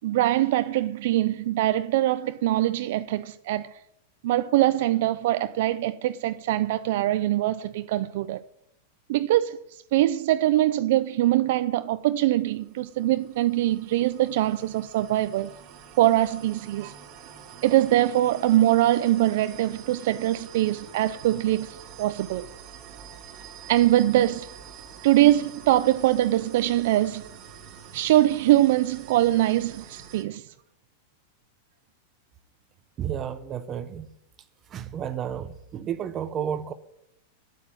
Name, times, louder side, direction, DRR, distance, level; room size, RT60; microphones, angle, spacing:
voice 1, 0.0-3.7 4.2-8.4 9.1-9.6 9.9-15.5 16.0-16.9 17.6-22.5 23.7-24.5 25.0-27.2 27.9-30.4, right 14 dB, 65° right, 0.5 m, -23 dB
sound 1, 12.2-30.2, right 7 dB, 45° right, 1.8 m, -46 dB
voice 2, 33.0-34.1 34.7-36.7, right 9 dB, 25° right, 0.7 m, -31 dB
8.4 x 8.2 x 8.7 m
supercardioid pair, 145°, 0 cm